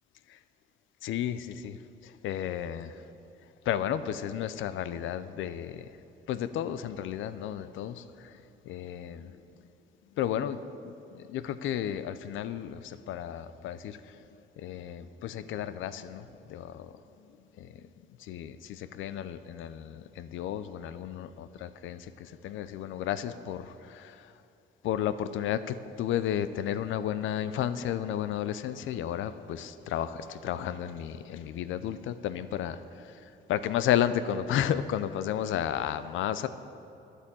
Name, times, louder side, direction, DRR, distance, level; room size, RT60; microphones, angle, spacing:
voice 1, 1.0-1.8 2.0-3.0 3.7-5.9 6.3-8.3 8.7-9.3 10.2-14.2 14.6-16.9 17.6-17.8 18.2-24.3 24.8-33.2 33.5-36.5, left 10 dB, 80° left, 13 dB, 0.5 m, -33 dB
10.0 x 8.2 x 7.5 m, 2.7 s
cardioid pair, 90°, 20 cm